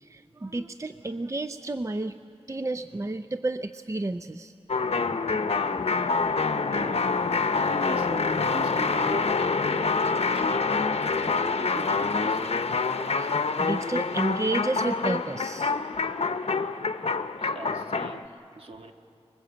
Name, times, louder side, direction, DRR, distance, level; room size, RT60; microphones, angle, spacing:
voice 1, 0.0-2.2 2.5-4.5 6.0-6.4 13.2-15.7, right 2 dB, 30° right, 10 dB, 0.5 m, -31 dB
sound 1, 4.7-18.2, left 4 dB, 70° left, 0.8 m, -26 dB
voice 2, 6.7-7.2 7.7-12.9 16.5-16.8 17.4-18.9, right 3 dB, 60° right, 4 dB, 1.8 m, -42 dB
24.0 x 21.5 x 8.0 m, 2.5 s
wide cardioid pair, 70°, 11 cm